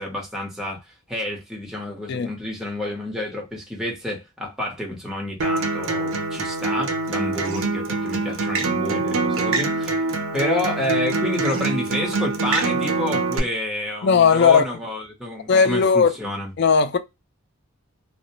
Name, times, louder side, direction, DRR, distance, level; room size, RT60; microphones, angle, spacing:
voice 1, 0.0-10.1 10.3-16.5, left 1 dB, ahead, 0.8 m, -29 dB
Acoustic guitar, 5.4-13.4, right 3 dB, 65° right, 0.6 m, -24 dB
voice 2, 14.0-14.7 15.5-16.1 16.6-17.0, left 6 dB, 50° left, 0.4 m, -16 dB
2.5 x 2.1 x 2.9 m
head